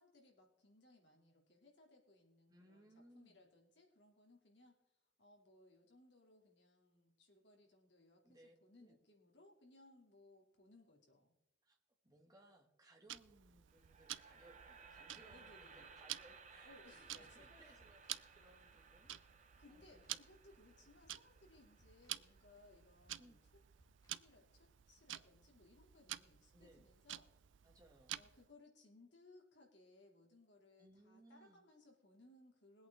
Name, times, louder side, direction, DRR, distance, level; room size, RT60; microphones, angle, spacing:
voice 1, 0.0-4.7 5.2-11.3 15.3-15.9 16.6-17.9 19.6-23.4 24.1-27.4 28.1-32.9, left 2 dB, 65° left, 1 dB, 2.8 m, -65 dB
voice 2, 2.5-3.4 8.2-9.0 11.6-11.8 12.0-18.0 18.3-20.0 20.8-20.9 23.2-23.4 26.5-26.9 27.6-28.2 30.8-31.6, right 1 dB, 20° right, 0 dB, 2.1 m, -66 dB
Tick-tock, 13.1-28.5, right 13 dB, 85° right, 0.5 m, -52 dB
sound 1, 13.7-23.8, right 5 dB, 40° right, 1.3 m, -62 dB
sound 2, 17.0-24.8, equal, 20° left, 1.6 m, -75 dB
21.5 x 8.5 x 3.7 m, 0.94 s
head